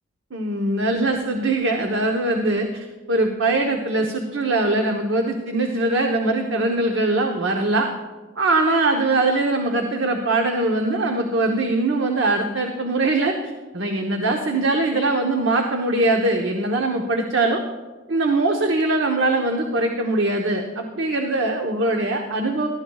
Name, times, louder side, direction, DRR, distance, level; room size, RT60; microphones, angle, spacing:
voice 1, 0.3-7.9 8.4-17.6 18.1-22.7, right 2 dB, 80° right, 2 dB, 1.0 m, -22 dB
18.0 x 13.0 x 2.4 m, 1.3 s
head